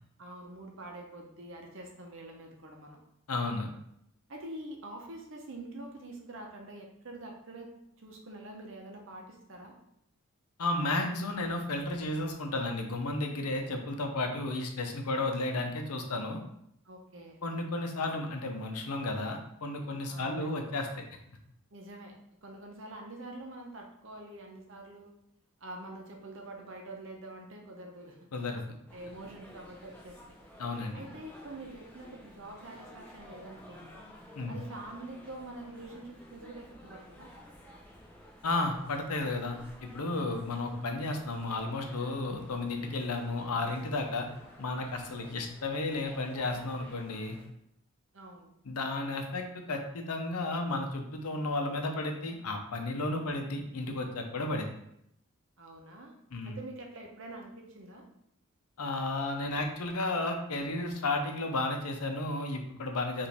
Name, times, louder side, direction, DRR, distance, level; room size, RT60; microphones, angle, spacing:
voice 1, 0.2-3.0 4.3-9.7 16.8-17.4 20.1-20.6 21.7-22.1 22.4-25.1 25.6-28.3 28.9-30.2 30.9-34.0 34.5-37.3 48.1-48.6 55.6-56.2 56.5-58.1, right 1 dB, 55° right, 1 dB, 0.8 m, -46 dB
voice 2, 3.3-3.7 10.6-16.4 17.4-20.9 28.3-28.6 30.6-31.0 34.4-34.6 38.4-44.3 44.6-47.4 48.7-54.7 56.3-56.5 58.8-63.3, left 2 dB, 85° left, 4 dB, 0.7 m, -33 dB
sound 1, 28.9-47.5, left 1 dB, 5° left, 0.6 m, -53 dB
4.9 x 2.6 x 3.4 m, 0.76 s
head